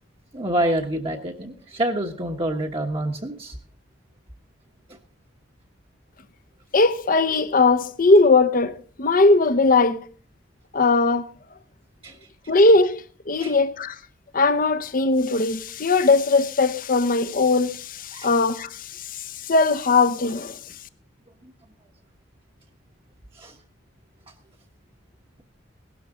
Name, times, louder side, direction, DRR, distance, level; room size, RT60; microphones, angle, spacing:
voice 1, 0.3-3.6 12.0-12.2 13.4-13.5 18.1-18.3 21.4-21.5 23.3-23.6, right 1 dB, 30° right, 1.2 m, -27 dB
voice 2, 6.7-10.0 10.7-11.3 12.5-14.0 14.3-20.6, left 3 dB, 45° left, 0.8 m, -19 dB
17.0 x 12.5 x 3.7 m
head